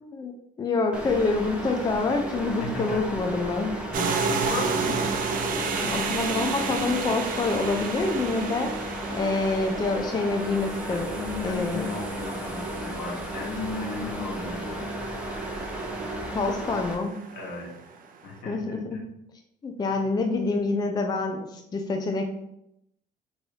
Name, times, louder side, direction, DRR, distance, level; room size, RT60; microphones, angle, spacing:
voice 1, 0.0-3.8 5.8-8.7 9.1-11.2 11.4-11.9 16.3-17.1 18.5-19.0 19.6-22.3, left 3 dB, 25° left, 4 dB, 0.4 m, -27 dB
sound 1, 0.9-17.0, right 1 dB, 5° right, 0.8 m, -34 dB
voice 2, 2.6-3.0 3.9-5.1 5.7-6.7 10.9-14.9 17.3-17.7 18.2-19.0 20.2-20.5, left 3 dB, 85° left, -2 dB, 1.4 m, -36 dB
sound 2, 3.9-18.1, right 5 dB, 55° right, 0.6 m, -33 dB
3.2 x 2.7 x 4.5 m, 0.80 s
cardioid pair, 110°, 17 cm